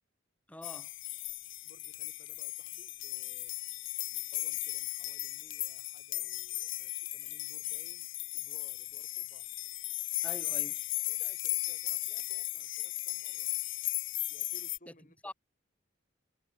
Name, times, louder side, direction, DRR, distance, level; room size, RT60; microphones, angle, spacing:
voice 1, 0.5-0.9 10.2-10.8 15.2-15.3, left 1 dB, 5° left, 1.5 m, -45 dB
sound 1, 0.6-14.8, left 19 dB, 70° left, 0.6 m, -36 dB
voice 2, 1.6-3.6 4.1-8.1 8.3-9.5 11.1-13.5 14.3-15.2, left 1 dB, 40° left, 3.7 m, -61 dB
head